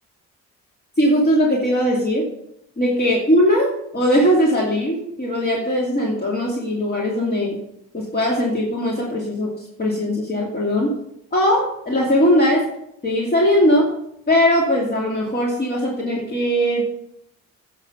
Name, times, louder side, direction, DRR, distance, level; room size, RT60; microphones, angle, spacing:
voice 1, 1.0-2.3 2.8-7.6 7.9-11.0 11.3-12.7 13.0-13.9 14.3-16.9, equal, 30° left, -3 dB, 2.5 m, -19 dB
10.0 x 6.6 x 5.4 m, 0.74 s
cardioid pair, 90°, 30 cm